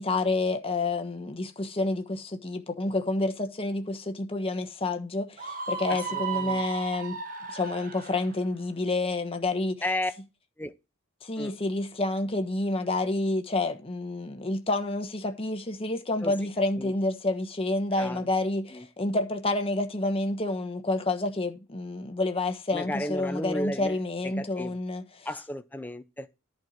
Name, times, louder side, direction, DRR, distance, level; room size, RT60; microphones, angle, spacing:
voice 1, 0.0-7.2 7.5-9.8 11.2-25.3, left 2 dB, 25° left, 1.2 m, -29 dB
Screaming, 5.4-8.3, right 5 dB, 40° right, 1.1 m, -34 dB
voice 2, 5.9-6.6 9.8-10.1 10.6-10.7 11.4-11.5 16.2-16.3 16.8-16.9 18.0-18.2 18.7-18.9 22.7-24.8 25.2-26.3, left 1 dB, 10° left, 0.6 m, -34 dB
10.5 x 4.6 x 7.2 m
head